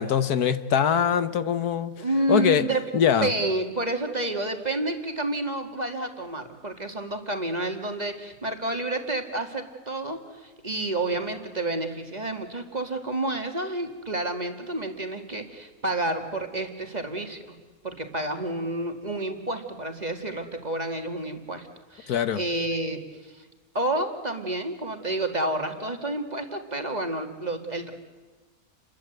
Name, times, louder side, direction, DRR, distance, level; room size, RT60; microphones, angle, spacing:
voice 1, 0.0-2.0 2.3-2.6 2.9-3.3 22.1-22.4, left 8 dB, 85° left, 12 dB, 1.6 m, -23 dB
voice 2, 2.0-2.8 3.2-17.6 17.8-23.5 23.7-27.9, right 2 dB, 25° right, 4 dB, 2.2 m, -30 dB
29.5 x 22.5 x 8.1 m, 1.3 s
omnidirectional pair, 1.6 m